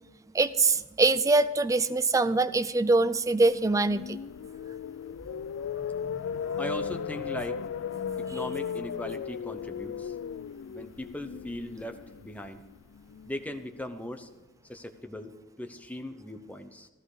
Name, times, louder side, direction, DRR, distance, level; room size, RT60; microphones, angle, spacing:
voice 1, 0.3-4.2, right 3 dB, 15° right, 13 dB, 0.4 m, -23 dB
sound 1, 3.5-13.6, left 7 dB, 90° left, 0.3 m, -36 dB
voice 2, 6.6-7.6 8.2-10.1 10.7-12.6 13.3-14.3 14.6-16.9, left 1 dB, 10° left, 6 dB, 0.8 m, -39 dB
13.5 x 13.0 x 5.0 m, 1.1 s
head